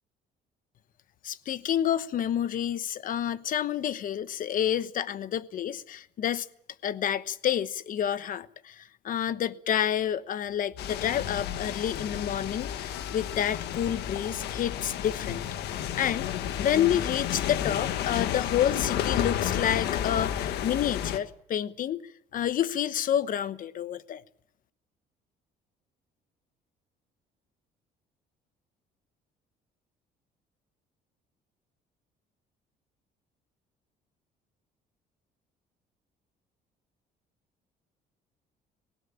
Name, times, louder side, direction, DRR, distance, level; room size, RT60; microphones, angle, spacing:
voice 1, 1.2-6.5 6.8-16.3 16.6-22.1 22.3-24.2, left 10 dB, 55° left, 1.0 m, -29 dB
sound 1, 10.8-21.2, left 10 dB, 80° left, 1.5 m, -31 dB
19.0 x 16.5 x 8.7 m
cardioid pair, 110°, 17 cm